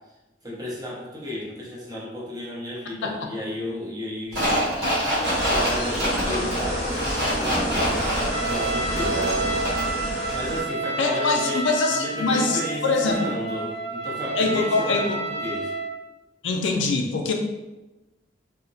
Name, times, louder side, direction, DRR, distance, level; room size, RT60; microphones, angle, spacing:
voice 1, 0.4-4.5 5.5-9.7 10.3-15.7, left 1 dB, 20° right, -5 dB, 0.6 m, -33 dB
sound 1, 4.3-10.0 10.3-10.4, equal, 55° right, 1.0 m, -26 dB
sound 2, 5.2-10.6, equal, 35° left, 0.7 m, -29 dB
Trumpet, 8.3-16.0, right 2 dB, 75° right, 0.6 m, -30 dB
voice 2, 11.0-13.3 14.4-15.2 16.4-17.3, left 3 dB, 75° left, 3 dB, 0.4 m, -23 dB
2.8 x 2.1 x 2.6 m, 1.0 s
head